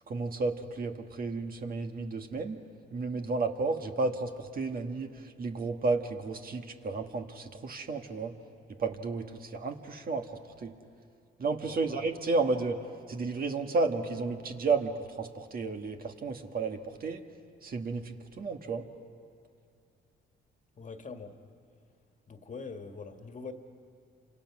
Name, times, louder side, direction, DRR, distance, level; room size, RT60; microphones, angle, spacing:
voice 1, 0.1-2.6 2.9-8.3 8.8-10.7 11.4-12.8 13.1-17.2 17.6-18.8, right 3 dB, 45° right, 5 dB, 1.7 m, -32 dB
voice 2, 11.6-12.1 20.8-21.3 22.3-23.5, left 4 dB, 40° left, 6 dB, 1.8 m, -43 dB
29.5 x 26.0 x 6.1 m, 2.4 s
cardioid pair, 90°, 20 cm